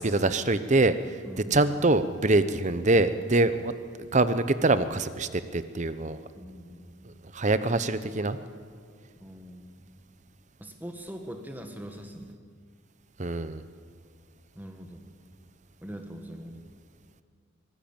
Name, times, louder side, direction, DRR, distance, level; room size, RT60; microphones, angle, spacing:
voice 1, 0.0-1.2 1.5-3.7 4.0-6.2 7.1-8.4 13.2-13.6, right 2 dB, 35° right, 12 dB, 0.8 m, -24 dB
voice 2, 1.2-1.7 6.4-7.0 9.2-9.9 10.6-12.4 14.5-15.0 15.8-16.6, equal, 10° right, 5 dB, 1.7 m, -42 dB
24.0 x 15.5 x 8.9 m, 2.1 s
head